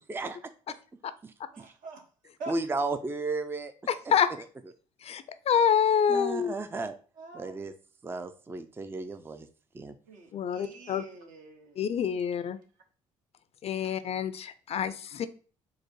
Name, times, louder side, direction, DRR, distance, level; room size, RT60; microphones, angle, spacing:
voice 1, 1.5-2.0 2.4-2.5 7.2-7.6 10.0-11.9, right 3 dB, 65° right, 3 dB, 1.1 m, -44 dB
voice 2, 2.5-3.7 6.1-7.0 7.3-7.7 8.0-9.5 9.7-9.9, right 3 dB, 15° right, 10 dB, 0.4 m, -33 dB
voice 3, 3.9-4.3 5.0-6.6 10.3-11.0 11.8-12.6 13.6-15.3, left 8 dB, 45° left, 12 dB, 0.4 m, -27 dB
4.7 x 2.1 x 4.5 m, 0.39 s
hypercardioid pair, 55°, 14 cm